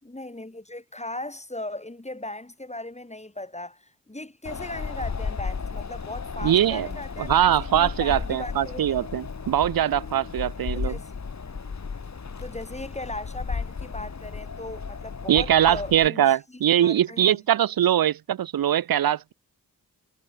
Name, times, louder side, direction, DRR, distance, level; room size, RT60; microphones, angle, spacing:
voice 1, 0.0-7.4 7.7-8.8 10.7-11.1 12.4-17.4, left 1 dB, 20° left, 7.6 m, -38 dB
Wind, 4.4-16.1, left 5 dB, 55° left, 2.3 m, -34 dB
voice 2, 6.4-6.9 7.2-11.0 15.3-19.3, right 11 dB, 85° right, 0.7 m, -22 dB
cardioid pair, 60°, 34 cm